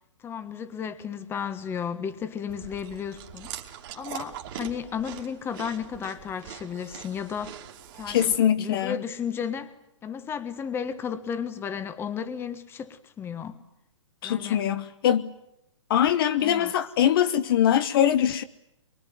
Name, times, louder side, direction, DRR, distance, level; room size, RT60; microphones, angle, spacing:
voice 1, 0.2-3.5 3.9-7.6 7.9-9.7 10.0-13.6 14.2-14.6 16.4-16.7, left 7 dB, 15° left, 1.4 m, -33 dB
Chewing mastication, 2.5-8.4, right 10 dB, 45° right, 2.7 m, -42 dB
voice 2, 8.1-9.0 14.2-15.3 15.9-18.4, left 10 dB, 50° left, 1.2 m, -22 dB
24.0 x 24.0 x 9.3 m
hypercardioid pair, 135°, 16 cm